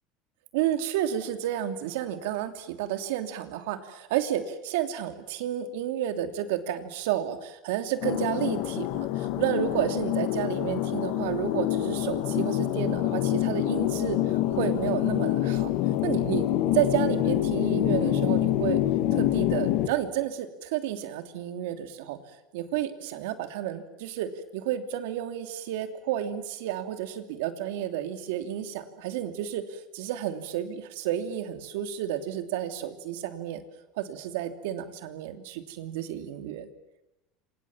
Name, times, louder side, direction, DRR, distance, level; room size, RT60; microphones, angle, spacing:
voice 1, 0.5-14.2 14.5-15.7 16.0-18.8 19.1-22.2 22.5-33.6 34.0-36.7, right 11 dB, 80° right, 8 dB, 3.0 m, -31 dB
sound 1, 8.0-19.9, left 13 dB, 65° left, 2.0 m, -26 dB
29.0 x 25.5 x 7.4 m, 0.94 s
supercardioid pair, 135°, 0 cm